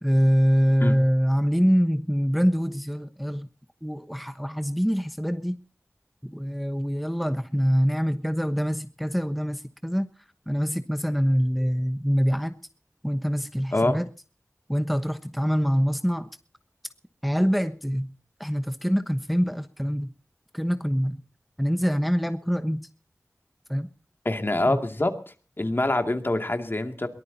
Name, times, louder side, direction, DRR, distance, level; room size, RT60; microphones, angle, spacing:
voice 1, 0.0-3.5 3.8-5.6 6.2-10.1 10.5-12.6 13.0-14.1 14.7-16.3 17.2-18.1 18.4-20.1 20.5-21.2 21.6-22.9 23.7-23.9 24.6-24.8, equal, ahead, 9 dB, 1.1 m, -24 dB
voice 2, 24.2-25.1 25.6-27.1, left 2 dB, 45° left, 6 dB, 2.4 m, -25 dB
22.5 x 19.0 x 2.8 m, 0.37 s
wide cardioid pair, 55°, 5 cm